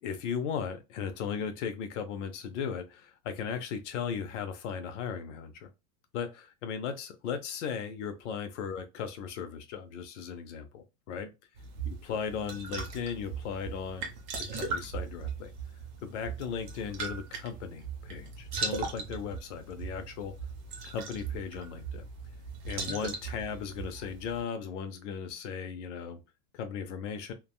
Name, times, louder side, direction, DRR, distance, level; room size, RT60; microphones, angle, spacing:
voice 1, 0.0-5.7 6.1-11.3 11.9-14.1 14.4-15.5 16.0-20.3 20.8-22.1 22.7-26.2 26.5-27.3, left 7 dB, 50° left, 0.6 m, -37 dB
sound 1, 11.6-24.4, right 5 dB, 30° right, 0.5 m, -39 dB
3.4 x 2.1 x 2.2 m
supercardioid pair, 165°, 48 cm